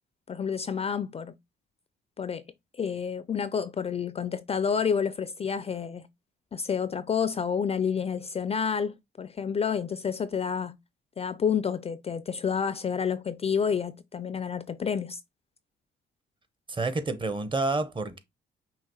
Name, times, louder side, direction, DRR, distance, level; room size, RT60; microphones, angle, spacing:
voice 1, 0.3-1.3 2.2-2.4 2.7-6.0 6.5-10.8 11.2-15.2, left 6 dB, 30° left, 0.3 m, -29 dB
voice 2, 16.7-18.2, right 3 dB, 25° right, 0.7 m, -29 dB
5.7 x 2.5 x 2.9 m
cardioid pair, 90°, 20 cm